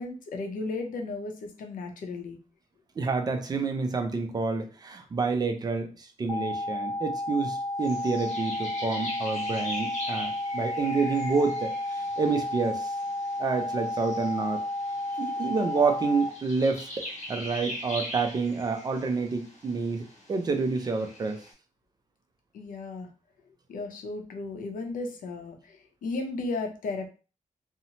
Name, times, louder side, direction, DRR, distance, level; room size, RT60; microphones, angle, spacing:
voice 1, 0.0-2.4 22.5-23.1 23.7-27.1, left 3 dB, 90° left, 4 dB, 0.6 m, -35 dB
voice 2, 3.0-13.0 13.4-14.6 15.2-21.4, right 4 dB, 30° right, 5 dB, 0.4 m, -28 dB
sound 1, 6.3-16.3, left 1 dB, 35° left, 0.4 m, -32 dB
sound 2, 7.8-21.5, left 1 dB, 55° left, 0.8 m, -42 dB
2.8 x 2.0 x 2.8 m, 0.35 s
wide cardioid pair, 175°, 14 cm